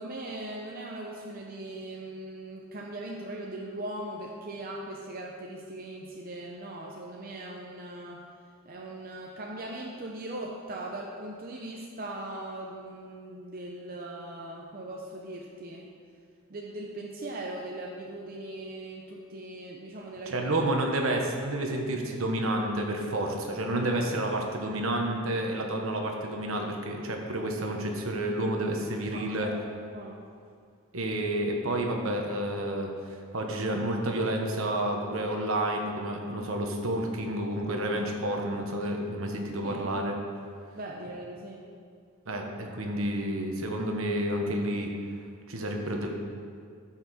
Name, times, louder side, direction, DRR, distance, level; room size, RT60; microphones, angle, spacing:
voice 1, 0.0-8.2 8.6-15.9 16.5-20.6 29.1-30.2 39.6-39.9 40.7-41.6, right 1 dB, 40° right, -1 dB, 0.7 m, -39 dB
voice 2, 20.3-29.5 30.9-40.1 42.3-44.9 45.5-46.1, right 1 dB, 65° right, 2 dB, 1.2 m, -30 dB
13.5 x 5.8 x 4.3 m, 2.2 s
head